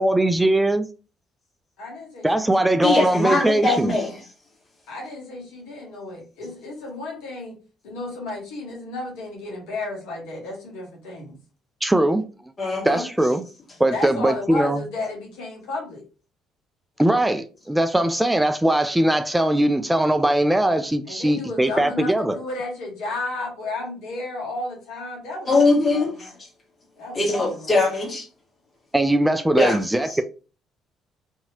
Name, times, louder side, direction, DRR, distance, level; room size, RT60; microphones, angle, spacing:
voice 1, 0.0-0.8 2.2-3.9 11.8-12.2 12.8-13.5 13.8-14.8 17.0-22.4 28.9-30.2, right 1 dB, 10° right, 0.3 m, -20 dB
voice 2, 1.8-2.7 4.9-7.6 7.8-11.4 13.9-16.0 21.1-25.5 25.9-26.1 27.0-27.2 27.5-27.7, left 2 dB, 80° left, 1.1 m, -33 dB
voice 3, 2.8-4.2 12.6-13.0 25.5-26.3 27.1-28.2 29.6-29.8 30.1-30.2, left 3 dB, 40° left, 1.6 m, -21 dB
2.8 x 2.7 x 2.8 m
hypercardioid pair, 55°, 0 cm